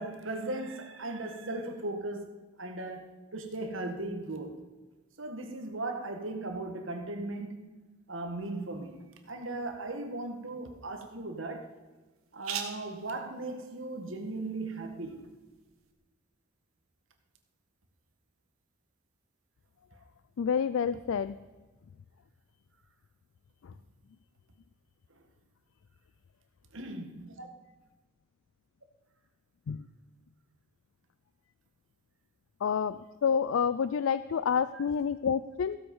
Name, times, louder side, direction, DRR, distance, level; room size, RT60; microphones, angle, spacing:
voice 1, 0.0-2.3 2.6-4.6 5.2-7.7 8.1-11.7 12.3-15.3 25.1-25.2 26.7-27.5 34.7-34.8, right 2 dB, 65° right, 1.6 m, -37 dB
sound 1, 8.4-15.9, right 7 dB, 90° right, 1.7 m, -47 dB
voice 2, 20.4-21.3 23.6-23.7 29.7-29.8 32.6-35.8, left 7 dB, 70° left, 0.4 m, -28 dB
15.5 x 8.0 x 5.4 m
head